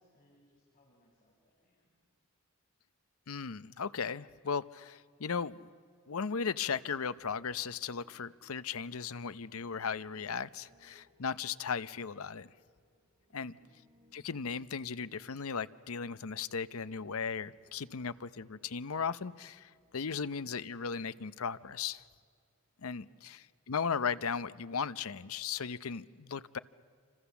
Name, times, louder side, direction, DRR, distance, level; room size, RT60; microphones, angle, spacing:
voice 1, 0.0-2.0 13.3-13.7 22.9-23.3, equal, 40° left, 5.1 m, -69 dB
voice 2, 3.3-5.7 6.1-12.5 13.3-13.5 14.1-22.0 22.8-26.6, left 6 dB, 75° left, 0.7 m, -37 dB
Piano, 6.3-20.0, left 1 dB, 25° right, 6.2 m, -68 dB
28.5 x 26.5 x 7.1 m
head